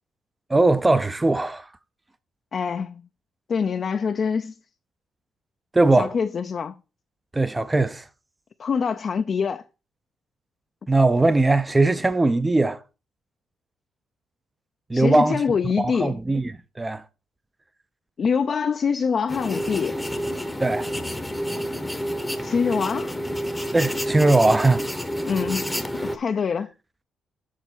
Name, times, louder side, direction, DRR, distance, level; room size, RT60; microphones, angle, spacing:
voice 1, 0.5-1.6 5.7-6.1 7.3-8.0 10.9-12.8 14.9-15.4 15.8-16.5 16.8-17.0 20.6-20.9 23.7-24.8, right 2 dB, 15° right, 0.6 m, -20 dB
voice 2, 2.5-3.0 3.5-4.5 6.0-6.7 8.6-9.6 14.9-16.2 18.2-20.0 22.4-23.1 25.2-25.7 25.9-26.7, left 6 dB, 45° left, 0.5 m, -24 dB
sound 1, 19.3-26.2, equal, 5° left, 0.9 m, -29 dB
7.5 x 4.0 x 6.1 m
cardioid pair, 90°, 0 cm